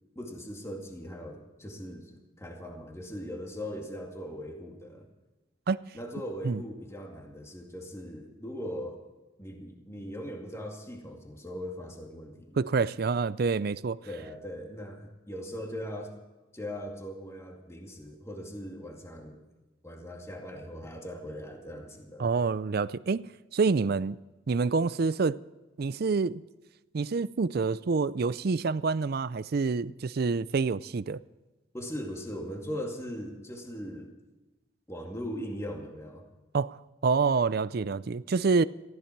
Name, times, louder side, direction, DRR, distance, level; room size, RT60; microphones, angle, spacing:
voice 1, 0.1-5.1 5.9-9.0 9.4-12.6 14.0-16.2 16.5-19.4 19.8-22.3 31.7-34.1 34.9-36.3, equal, 15° left, 2.3 m, -40 dB
voice 2, 12.6-14.0 22.2-23.2 23.5-24.2 24.5-25.4 25.8-26.4 26.9-31.2 36.5-38.6, right 4 dB, 50° right, 0.5 m, -27 dB
19.0 x 15.0 x 4.6 m
head